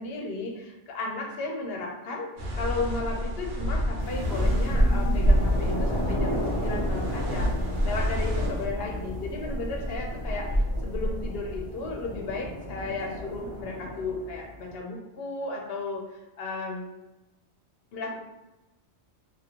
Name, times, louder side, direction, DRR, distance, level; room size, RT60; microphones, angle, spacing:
voice 1, 0.0-2.3 2.5-16.8 17.9-18.2, left 3 dB, 60° left, -1 dB, 0.8 m, -34 dB
sound 1, 2.4-8.7, left 1 dB, 85° right, 0.9 m, -30 dB
sound 2, 4.0-14.7, equal, 45° left, 0.3 m, -28 dB
2.7 x 2.5 x 2.8 m, 0.98 s
omnidirectional pair, 1.2 m